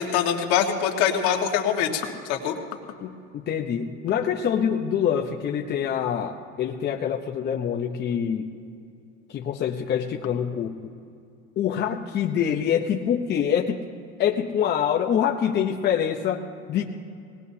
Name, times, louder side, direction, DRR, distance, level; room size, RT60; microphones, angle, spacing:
voice 1, 0.0-2.5, left 8 dB, 65° left, 2 dB, 1.8 m, -24 dB
voice 2, 3.0-8.5 9.3-10.8 11.6-13.8 14.2-16.8, left 8 dB, 35° left, 1 dB, 0.9 m, -25 dB
20.5 x 19.5 x 2.8 m, 2.4 s
supercardioid pair, 130°, 30 cm